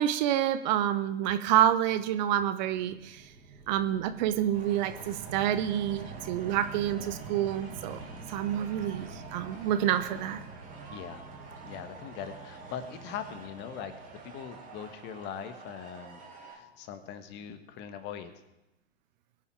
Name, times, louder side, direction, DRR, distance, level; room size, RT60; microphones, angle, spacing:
voice 1, 0.0-3.2 3.7-8.0 8.3-10.4, right 11 dB, 45° right, 11 dB, 0.9 m, -28 dB
sound 1, 2.6-15.2, right 3 dB, 70° right, 4.4 m, -47 dB
sound 2, 4.5-16.5, right 4 dB, 25° right, 3.6 m, -49 dB
voice 2, 10.9-11.3 11.6-13.9 14.3-18.3, left 8 dB, 35° left, 10 dB, 1.4 m, -41 dB
21.5 x 7.2 x 4.7 m, 0.91 s
figure-of-eight pair, 105°, 32 cm